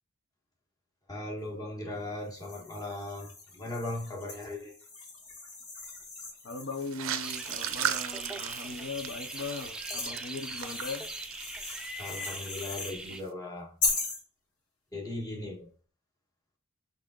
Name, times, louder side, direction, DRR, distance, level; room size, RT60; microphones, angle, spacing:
voice 1, 1.1-4.8 12.0-13.7 14.9-15.7, left 1 dB, 15° left, 1.2 m, -38 dB
sound 1, 2.3-7.9 8.5-13.0 13.8-14.2, left 3 dB, 75° left, 1.3 m, -39 dB
voice 2, 6.4-11.1, left 4 dB, 55° left, 0.5 m, -39 dB
sound 2, 6.8-12.6 12.8-13.2, right 9 dB, 65° right, 0.5 m, -37 dB
sound 3, 7.2-13.2, right 1 dB, 5° right, 0.3 m, -41 dB
5.6 x 3.6 x 2.3 m
head